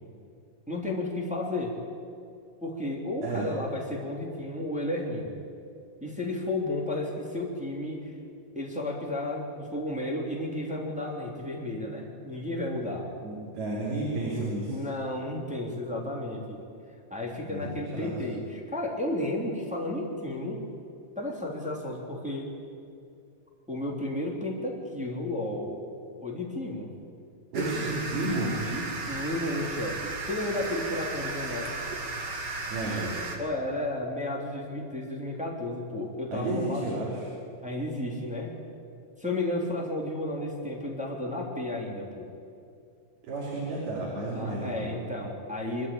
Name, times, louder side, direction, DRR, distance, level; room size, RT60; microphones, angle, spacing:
voice 1, 0.7-1.7 2.6-5.3 6.0-8.1 8.5-13.0 14.2-16.6 17.1-20.6 21.1-22.5 23.7-25.8 26.2-26.9 28.6-31.7 33.4-36.9 37.6-38.5 39.2-42.3 44.3-45.9, left 1 dB, ahead, -3 dB, 2.6 m, -33 dB
voice 2, 13.2-14.8 17.5-18.1 27.5-28.6 32.7-33.2 36.3-37.2 43.2-44.9, right 2 dB, 75° right, -6 dB, 5.5 m, -32 dB
sound 1, 27.5-33.4, right 3 dB, 45° right, 2.8 m, -34 dB
25.5 x 12.5 x 8.8 m, 2.5 s
omnidirectional pair, 4.4 m